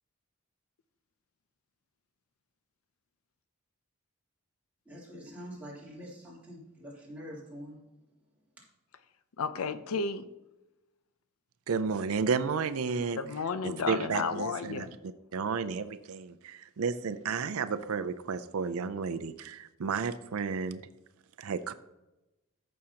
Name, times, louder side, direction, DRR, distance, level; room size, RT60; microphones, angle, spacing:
voice 1, 4.8-7.8, equal, 5° right, -7 dB, 3.1 m, -45 dB
voice 2, 9.4-10.3 13.1-14.9, left 5 dB, 75° left, 12 dB, 0.5 m, -32 dB
voice 3, 11.7-13.2 13.6-14.9 15.3-20.8 21.4-21.7, right 5 dB, 75° right, 11 dB, 0.5 m, -32 dB
14.5 x 6.3 x 2.9 m, 0.98 s
head